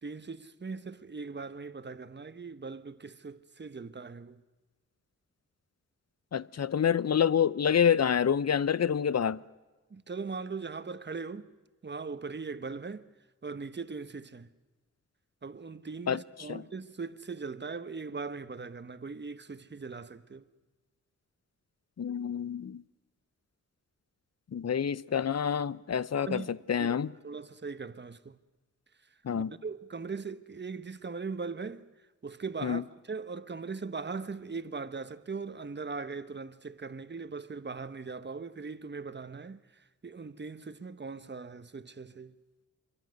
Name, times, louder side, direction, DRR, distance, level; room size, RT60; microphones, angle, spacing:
voice 1, 0.0-4.4 9.9-11.5 11.8-13.1 13.4-14.5 15.4-20.5 26.3-26.5 26.8-28.4 29.0-42.3, right 4 dB, 35° right, 1.1 m, -40 dB
voice 2, 6.3-9.4 16.1-16.2 16.5-16.6 22.0-22.8 24.5-27.1 29.2-29.5 32.6-32.8, left 8 dB, 60° left, 0.7 m, -27 dB
27.0 x 23.0 x 6.5 m
wide cardioid pair, 110°, 30 cm